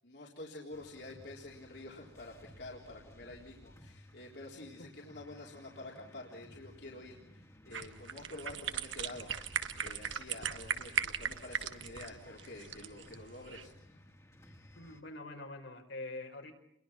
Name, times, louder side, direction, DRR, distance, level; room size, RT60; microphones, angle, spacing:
voice 1, 0.0-9.3 9.8-14.0 14.4-14.6, left 2 dB, 65° left, -2 dB, 3.8 m, -49 dB
sound 1, 0.7-15.0, left 1 dB, 15° left, 2.0 m, -57 dB
sound 2, 7.7-13.7, right 7 dB, 90° right, 1.7 m, -38 dB
voice 2, 14.8-16.5, left 2 dB, 85° left, 3 dB, 5.2 m, -45 dB
29.5 x 22.5 x 5.9 m, 0.76 s
head